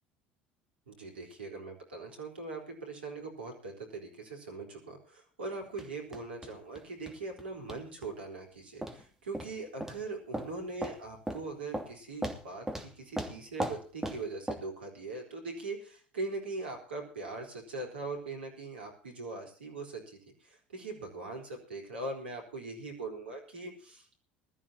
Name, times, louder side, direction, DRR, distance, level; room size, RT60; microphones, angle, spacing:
voice 1, 0.9-24.1, right 3 dB, 80° right, 2 dB, 4.3 m, -41 dB
sound 1, 5.8-5.9 6.1-6.8 7.1-7.4 7.7-8.1 8.8-9.0 9.3-9.5 9.8-10.0 10.3-10.5 10.8-11.0 11.3-11.4 11.7-11.9 12.2-12.9 13.2-14.2 14.5-14.6, right 1 dB, 5° right, 2.7 m, -36 dB
21.0 x 13.5 x 2.9 m, 0.40 s
figure-of-eight pair, 65°, 6 cm